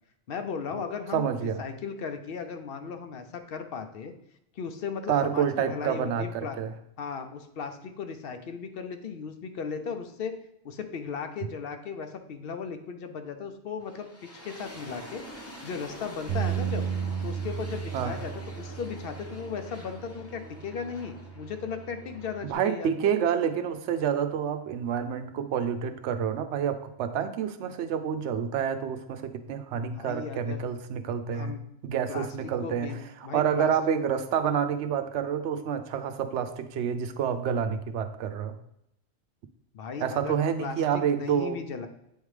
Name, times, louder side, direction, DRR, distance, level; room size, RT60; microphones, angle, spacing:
voice 1, 0.3-4.1 4.6-6.6 7.0-10.3 10.6-14.1 14.4-15.2 15.6-16.9 17.2-23.1 29.9-30.6 31.3-31.6 32.1-33.0 33.2-33.7 39.7-41.9, left 6 dB, 65° left, 8 dB, 0.7 m, -36 dB
voice 2, 1.1-1.6 5.1-6.7 17.9-18.1 22.4-31.5 31.8-33.0 33.3-38.6 40.0-41.6, right 8 dB, 90° right, 9 dB, 0.9 m, -28 dB
sound 1, 13.8-24.7, equal, 15° left, 0.8 m, -46 dB
Bass guitar, 16.3-22.5, right 8 dB, 65° right, 0.9 m, -35 dB
8.2 x 3.6 x 3.2 m, 0.79 s
omnidirectional pair, 1.1 m